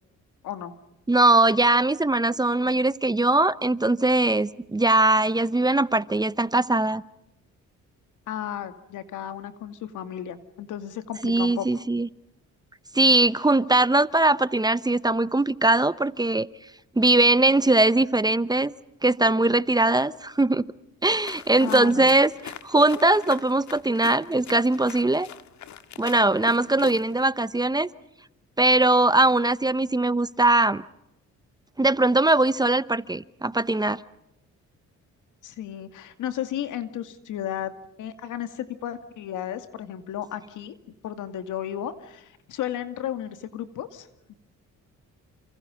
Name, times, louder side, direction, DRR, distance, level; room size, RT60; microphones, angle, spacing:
voice 1, 1.1-7.0 11.2-12.1 12.9-16.5 17.0-18.7 19.0-20.7 21.0-22.3 22.6-25.3 26.0-27.9 28.6-30.8 31.8-34.0, right 2 dB, 15° right, 16 dB, 0.8 m, -21 dB
voice 2, 8.3-11.8 21.6-22.2 26.7-27.0 35.4-37.7 38.0-40.8 41.0-44.3, left 10 dB, 85° left, 9 dB, 2.4 m, -34 dB
sound 1, 21.2-27.3, left 10 dB, 70° left, 1.7 m, -42 dB
29.5 x 27.0 x 5.3 m, 0.84 s
cardioid pair, 90°, 30 cm